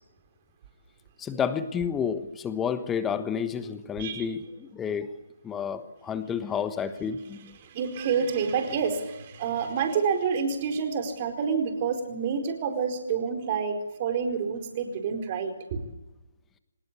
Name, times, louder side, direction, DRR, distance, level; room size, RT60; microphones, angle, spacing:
voice 1, 1.2-5.1 5.4-7.5, left 7 dB, 10° left, 12 dB, 1.3 m, -30 dB
voice 2, 7.6-15.8, right 6 dB, 30° right, 5 dB, 4.6 m, -28 dB
26.0 x 19.5 x 8.5 m, 1.0 s
figure-of-eight pair, 140°, 0 cm